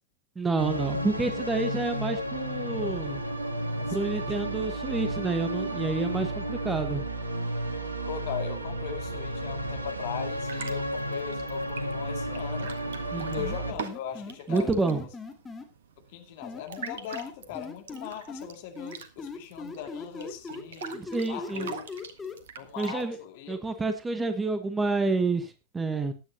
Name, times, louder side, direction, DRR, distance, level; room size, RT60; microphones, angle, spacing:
voice 1, 0.3-3.2 3.9-7.0 13.1-13.5 14.5-15.1 20.9-21.7 22.8-23.2 23.5-26.1, right 3 dB, 15° right, 9 dB, 1.4 m, -29 dB
sound 1, 0.6-13.7, right 1 dB, 80° right, 1.5 m, -32 dB
voice 2, 3.9-4.2 5.6-5.7 8.1-12.8 13.1-14.7 16.1-21.0 21.3-21.8 22.6-23.6, left 10 dB, 50° left, 5 dB, 2.4 m, -39 dB
Water Effects, 10.3-23.0, right 6 dB, 60° right, 1.4 m, -45 dB
sound 2, 13.4-15.6 16.4-18.5 18.8-22.3, left 4 dB, 15° left, 2.2 m, -39 dB
16.0 x 10.5 x 2.9 m, 0.26 s
figure-of-eight pair, 90°, 0 cm